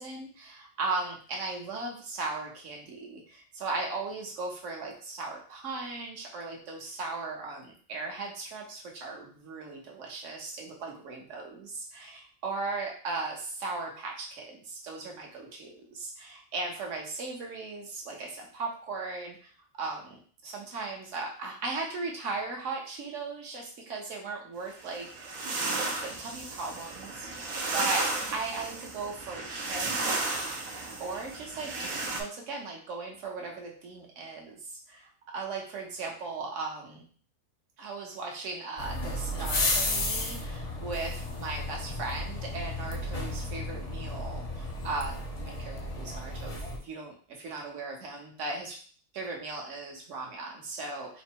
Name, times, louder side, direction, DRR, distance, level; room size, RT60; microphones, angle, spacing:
voice 1, 0.0-19.5 19.8-30.3 31.0-31.7 32.1-34.6 34.9-37.0 37.8-46.6 46.8-48.8 49.1-51.2, right 3 dB, 65° right, 0 dB, 1.3 m, -37 dB
sound 1, 24.8-32.2, right 3 dB, 85° right, 1.2 m, -34 dB
sound 2, 38.8-46.8, left 2 dB, 45° left, 0.5 m, -33 dB
4.1 x 2.0 x 4.5 m, 0.43 s
omnidirectional pair, 1.4 m